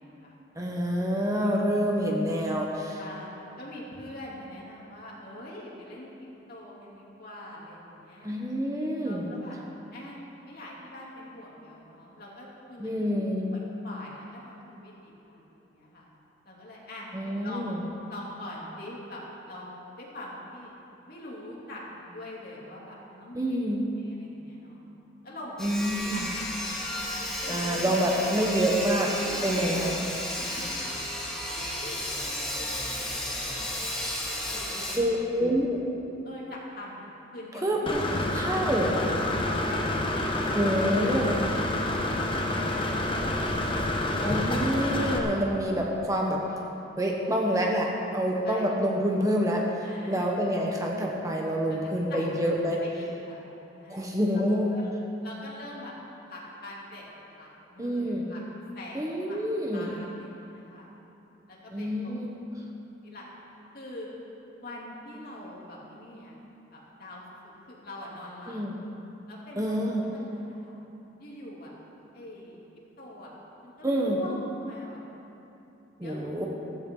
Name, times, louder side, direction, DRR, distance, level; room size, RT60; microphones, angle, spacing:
voice 1, 0.0-0.4 3.0-6.1 6.5-8.3 9.0-9.6 9.9-13.2 13.5-16.1 16.4-17.8 18.1-20.7 21.1-23.6 24.0-24.8 25.2-26.8 27.4-28.2 29.2-29.9 30.3-30.8 31.5-34.0 34.5-35.4 36.2-37.1 37.3-38.6 39.4-40.0 40.3-40.8 48.4-48.7 49.8-50.4 51.7-51.8 52.1-52.5 52.8-53.5 53.8-54.4 54.7-54.9 55.2-55.9 56.3-58.4 58.7-59.4 59.7-60.9 61.5-62.1 63.0-63.3 63.7-64.1 64.6-66.3 66.7-68.6 69.3-70.8 71.2-71.7 72.1-72.6 73.0-73.3 73.6-75.0 76.0-76.5, left 1 dB, 55° left, -5 dB, 3.2 m, -44 dB
voice 2, 0.6-3.0 8.2-9.3 12.8-13.5 17.1-17.8 23.3-23.9 25.6-26.3 27.5-29.1 29.4-29.9 35.0-35.8 37.6-39.0 40.5-41.5 44.2-46.4 47.0-52.8 53.9-54.8 57.8-58.3 58.9-60.0 61.7-62.4 68.5-68.8 69.6-70.0 73.8-74.2 76.0-76.5, equal, 20° right, -1 dB, 1.2 m, -27 dB
Sawing, 25.6-35.0, left 1 dB, 5° left, 2.3 m, -33 dB
Engine / Mechanisms, 37.9-45.2, left 1 dB, 30° left, 1.1 m, -28 dB
15.0 x 15.0 x 4.0 m, 2.9 s
head